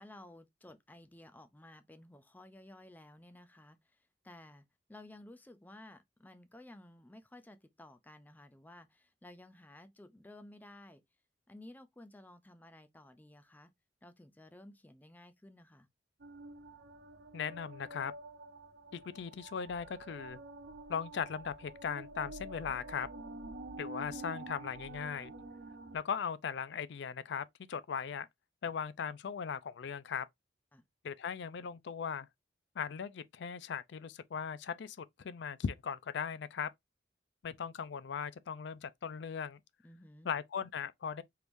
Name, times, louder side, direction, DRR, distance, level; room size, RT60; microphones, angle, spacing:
voice 1, 0.0-4.0 4.2-11.0 11.5-13.7 14.0-15.9 30.7-30.8 39.8-40.3, left 1 dB, 10° left, 0.4 m, -55 dB
sound 1, 16.2-26.0, right 2 dB, 60° right, 0.6 m, -48 dB
voice 2, 17.3-18.1 18.9-20.4 20.9-23.1 23.8-25.3 25.9-28.3 28.6-30.3 31.0-32.3 32.8-36.7 37.4-39.6 40.2-41.2, left 6 dB, 70° left, 0.4 m, -38 dB
4.6 x 3.5 x 2.5 m
head